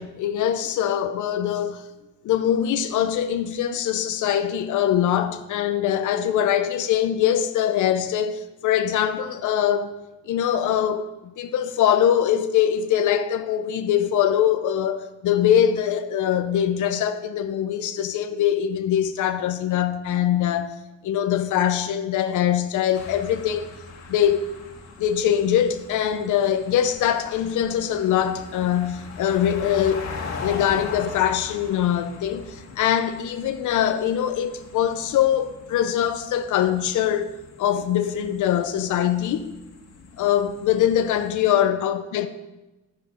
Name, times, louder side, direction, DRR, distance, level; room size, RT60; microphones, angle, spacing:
voice 1, 0.0-1.8 2.2-10.0 10.3-11.1 11.4-20.8 21.0-23.7 24.1-24.5 25.0-30.1 30.4-37.3 37.6-39.5 40.2-42.3, left 10 dB, 80° left, 0.7 m, -22 dB
sound 1, 22.9-41.3, left 4 dB, 60° left, 1.8 m, -40 dB
11.0 x 9.4 x 4.4 m
cardioid pair, 90°, 30 cm